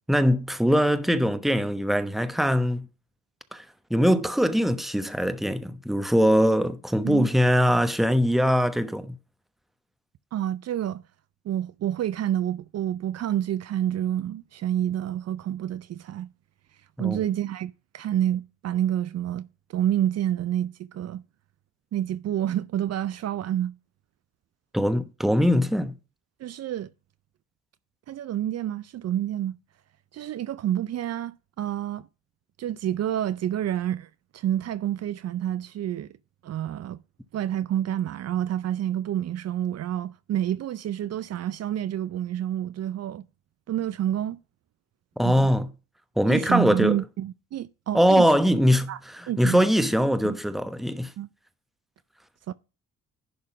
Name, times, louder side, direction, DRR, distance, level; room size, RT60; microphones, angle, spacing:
voice 1, 0.1-2.9 3.5-3.6 3.9-9.2 17.0-17.2 24.7-26.0 45.2-45.7 46.2-47.0 47.9-51.1, equal, ahead, 1.0 m, -22 dB
voice 2, 10.3-11.0 11.4-16.3 17.0-21.2 21.9-23.7 26.4-26.9 28.1-29.6 30.1-32.1 32.6-36.1 36.4-37.0 37.3-43.3 43.7-44.4 45.2-45.5 46.3-48.2 48.9-49.0 49.3-49.7 50.2-50.4 51.2-51.3 52.5-52.6, right 11 dB, 55° right, 0.6 m, -28 dB
11.0 x 3.7 x 6.0 m
cardioid pair, 90°, 30 cm